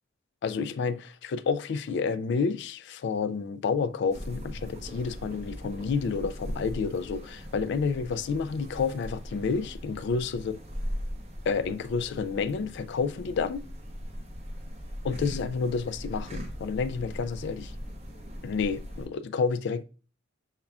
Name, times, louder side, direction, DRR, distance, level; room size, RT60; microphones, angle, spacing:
voice 1, 0.4-10.6 11.5-13.6 15.0-17.7 18.4-19.8, left 5 dB, 65° left, 0.3 m, -29 dB
sound 1, 4.1-19.1, equal, 35° right, 0.9 m, -39 dB
5.4 x 3.6 x 2.3 m
head